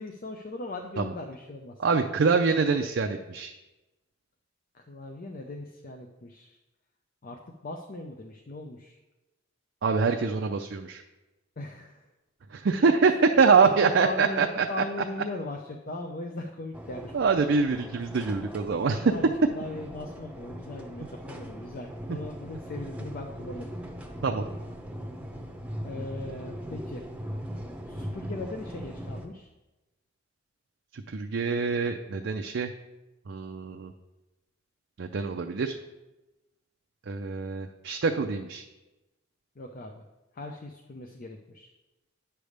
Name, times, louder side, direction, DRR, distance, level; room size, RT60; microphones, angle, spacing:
voice 1, 0.0-1.7 4.7-6.6 7.2-9.0 11.6-12.1 13.5-17.1 18.9-23.7 25.8-27.0 27.9-29.5 39.6-40.0 40.3-41.7, left 2 dB, 45° left, 3 dB, 0.6 m, -39 dB
voice 2, 1.8-3.5 9.8-11.0 12.5-14.7 17.1-19.1 24.2-24.5 30.9-32.7 33.3-33.9 35.0-35.8 37.1-38.6, right 5 dB, 60° right, 4 dB, 0.5 m, -25 dB
sound 1, 16.7-29.3, equal, 5° right, 0.8 m, -39 dB
9.8 x 3.4 x 6.5 m, 1.0 s
head